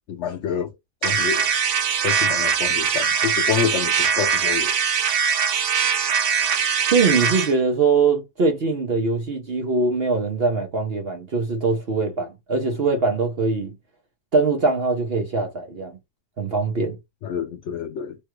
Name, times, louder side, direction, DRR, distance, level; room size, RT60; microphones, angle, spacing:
voice 1, 0.1-0.7 1.0-1.5 2.0-4.8 17.2-18.2, left 8 dB, 85° left, 0.6 m, -27 dB
sound 1, 1.0-7.5, right 7 dB, 85° right, 1.3 m, -22 dB
voice 2, 6.9-13.8 14.3-16.0 16.4-17.0, right 4 dB, 55° right, 0.7 m, -22 dB
3.2 x 2.2 x 3.0 m
omnidirectional pair, 1.8 m